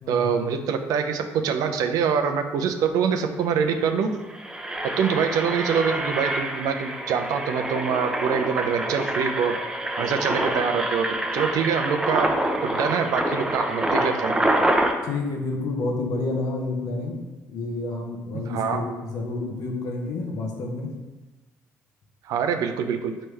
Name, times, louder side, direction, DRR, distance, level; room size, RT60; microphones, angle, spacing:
voice 1, 0.1-4.1 4.8-9.6 10.0-11.1 11.3-14.4 18.3-18.8 22.2-23.1, right 6 dB, 70° right, 7 dB, 0.4 m, -25 dB
Engine, 3.2-3.3 3.5-3.7 4.2-14.9, right 1 dB, 10° right, 0.6 m, -26 dB
voice 2, 15.0-17.2 17.5-20.9, left 2 dB, 70° left, 1 dB, 0.8 m, -29 dB
4.5 x 3.3 x 3.2 m, 1.1 s
supercardioid pair, 65°, 6 cm